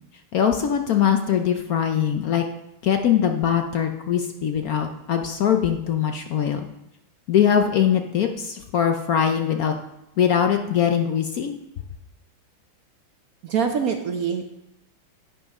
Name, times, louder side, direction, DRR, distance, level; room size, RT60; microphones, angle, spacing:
voice 1, 0.3-2.4 2.8-6.7 7.3-9.7 10.2-11.5, left 8 dB, 65° left, 5 dB, 1.0 m, -22 dB
voice 2, 13.4-14.4, right 6 dB, 60° right, 5 dB, 1.0 m, -24 dB
11.0 x 8.8 x 3.6 m, 0.86 s
omnidirectional pair, 2.1 m